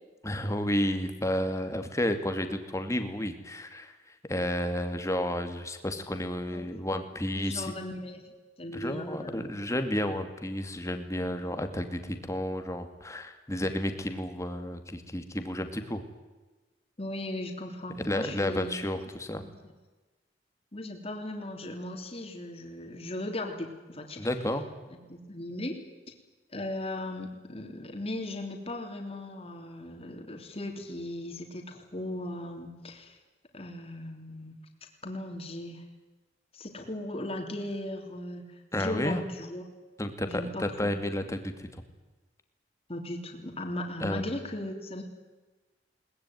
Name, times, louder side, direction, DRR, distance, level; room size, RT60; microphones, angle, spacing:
voice 1, 0.2-3.9 4.3-7.7 8.7-16.0 18.0-19.4 24.2-24.6 38.7-39.2 40.0-41.8 44.0-44.3, left 1 dB, 15° left, 7 dB, 2.4 m, -31 dB
voice 2, 7.3-8.3 8.6-9.5 17.0-18.8 19.4-19.7 20.7-24.2 25.1-25.8 26.5-33.2 33.5-34.5 35.0-35.9 36.5-39.6 40.3-40.9 42.9-45.0, left 1 dB, 35° left, 2 dB, 3.4 m, -37 dB
21.5 x 20.0 x 9.6 m, 1.2 s
head